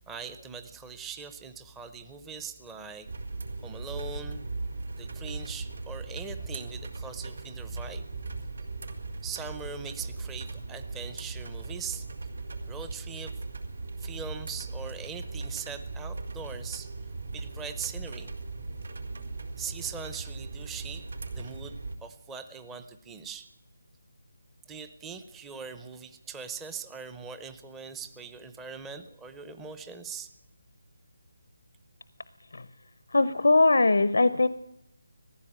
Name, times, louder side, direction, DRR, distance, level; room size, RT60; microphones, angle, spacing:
voice 1, 0.0-3.1 3.6-4.4 5.0-8.0 9.2-12.1 12.7-13.3 14.0-16.9 17.3-18.3 19.6-21.1 21.3-23.5 24.7-30.3, right 6 dB, 5° right, 9 dB, 0.7 m, -41 dB
sound 1, 3.1-22.0, right 3 dB, 75° right, 4.4 m, -38 dB
voice 2, 33.1-34.5, left 3 dB, 80° left, 15 dB, 0.8 m, -21 dB
19.0 x 15.0 x 8.9 m, 0.82 s
figure-of-eight pair, 175°, 0 cm